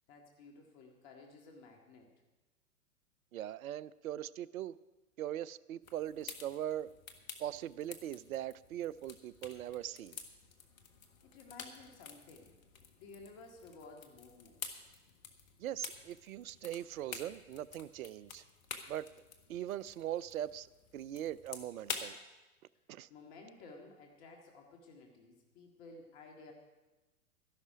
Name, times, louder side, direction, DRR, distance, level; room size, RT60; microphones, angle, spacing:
voice 1, 0.1-2.1 11.2-12.6 13.0-14.6 23.1-26.5, left 3 dB, 45° left, 2 dB, 1.9 m, -54 dB
voice 2, 3.3-4.8 5.2-6.9 7.4-10.2 15.6-18.4 18.9-19.1 19.5-22.2 22.9-23.1, right 12 dB, 65° right, 20 dB, 0.6 m, -40 dB
sound 1, 5.8-22.1, left 6 dB, 65° left, 1.6 m, -49 dB
13.5 x 11.5 x 5.0 m, 1.1 s
hypercardioid pair, 105°, 45 cm